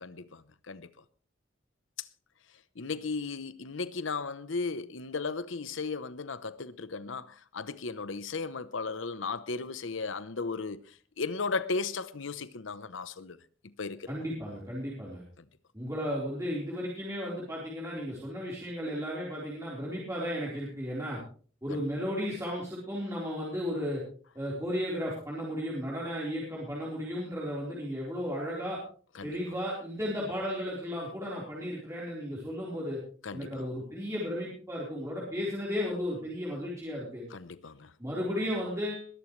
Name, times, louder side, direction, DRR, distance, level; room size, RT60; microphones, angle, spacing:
voice 1, 0.0-0.9 2.0-2.1 2.8-13.4 13.6-14.2 21.7-21.8 29.1-29.3 33.2-33.7 37.3-37.9, left 4 dB, 80° left, 0.9 m, -36 dB
voice 2, 14.1-15.2 15.7-21.2 21.6-24.0 24.3-28.8 29.2-33.0 33.3-37.2 38.0-39.1, equal, 15° right, 4.2 m, -34 dB
21.5 x 13.0 x 3.2 m
head